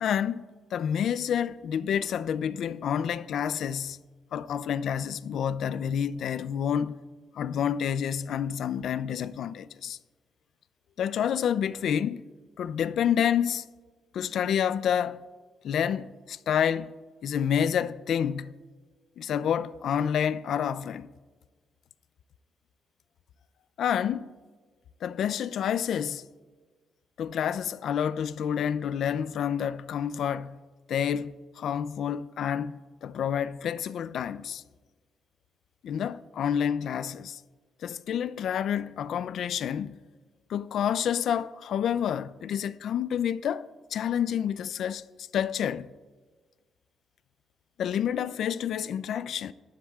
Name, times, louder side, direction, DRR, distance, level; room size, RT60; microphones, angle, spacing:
voice 1, 0.0-4.0 4.3-7.0 7.3-10.0 11.0-12.3 12.6-13.6 14.1-15.2 15.6-16.9 17.2-18.6 19.2-21.1 23.8-24.3 25.0-26.2 27.2-30.6 30.9-34.6 35.8-37.4 37.8-40.0 40.5-45.9 47.8-49.5, left 8 dB, 70° left, 0.4 m, -29 dB
22.0 x 13.0 x 2.4 m
cardioid pair, 120°, 0 cm